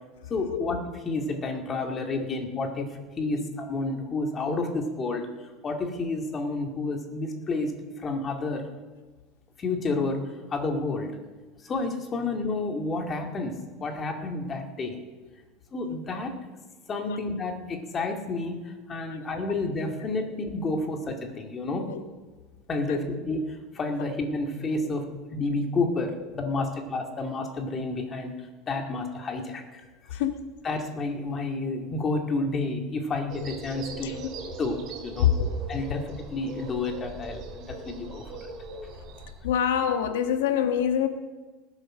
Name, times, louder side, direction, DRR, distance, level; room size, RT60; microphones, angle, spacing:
voice 1, 0.3-0.8 1.1-2.9 3.2-8.6 9.6-10.2 10.5-11.2 11.6-15.0 15.7-16.3 16.9-21.9 22.7-25.1 25.3-28.3 28.7-29.8 30.1-30.2 30.6-34.1 34.6-35.3 35.7-38.5, left 3 dB, 25° left, 3 dB, 2.1 m, -30 dB
voice 2, 30.1-30.5 34.0-34.3 35.2-35.5 39.4-41.1, left 9 dB, 90° left, 7 dB, 1.4 m, -25 dB
sound 1, 33.3-39.3, right 3 dB, 45° right, 3.4 m, -40 dB
19.0 x 8.2 x 6.3 m, 1.3 s
supercardioid pair, 130°, 0 cm